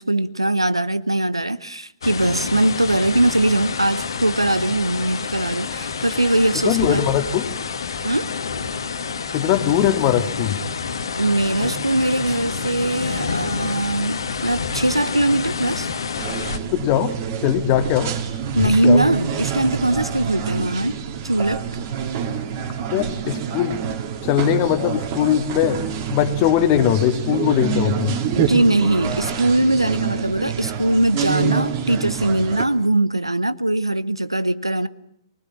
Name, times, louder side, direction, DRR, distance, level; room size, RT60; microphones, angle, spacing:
voice 1, 0.0-7.0 8.0-8.3 11.2-15.9 18.6-21.0 21.2-21.7 28.4-34.9, right 1 dB, 90° right, 1.0 m, -21 dB
sound 1, 2.0-16.6, left 5 dB, 65° left, 2.0 m, -28 dB
voice 2, 6.6-7.5 9.3-10.6 16.7-17.1 17.4-18.1 18.6-19.0 22.9-23.8 24.2-25.8 26.1-28.2, left 10 dB, 35° left, 2.0 m, -20 dB
sound 2, 16.2-32.7, right 7 dB, 40° right, 3.1 m, -27 dB
23.5 x 20.5 x 8.6 m
figure-of-eight pair, 115°, 3 cm